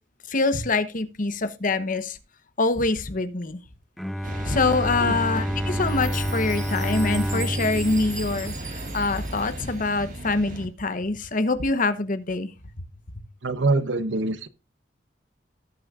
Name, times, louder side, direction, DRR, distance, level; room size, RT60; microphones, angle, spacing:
voice 1, 0.3-2.2 2.6-3.6 4.4-12.5 12.8-12.9, left 3 dB, 45° left, 1.0 m, -25 dB
Bowed string instrument, 4.0-9.2, equal, ahead, 0.5 m, -29 dB
sound 1, 4.2-10.7, right 1 dB, 45° right, 1.9 m, -35 dB
Chime, 5.8-10.0, right 3 dB, 20° right, 3.4 m, -40 dB
voice 2, 13.4-14.5, right 2 dB, 75° right, 0.9 m, -24 dB
18.0 x 6.3 x 2.5 m
head